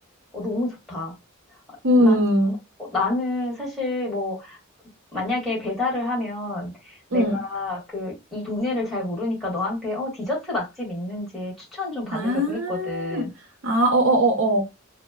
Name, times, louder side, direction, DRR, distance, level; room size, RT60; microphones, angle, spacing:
voice 1, 0.3-1.1 2.0-2.2 2.8-4.6 5.1-13.3, left 2 dB, ahead, 1.6 m, -28 dB
voice 2, 1.8-2.5 7.1-7.4 12.1-13.2 13.6-14.6, equal, 65° right, 0.7 m, -20 dB
4.2 x 2.0 x 2.3 m
head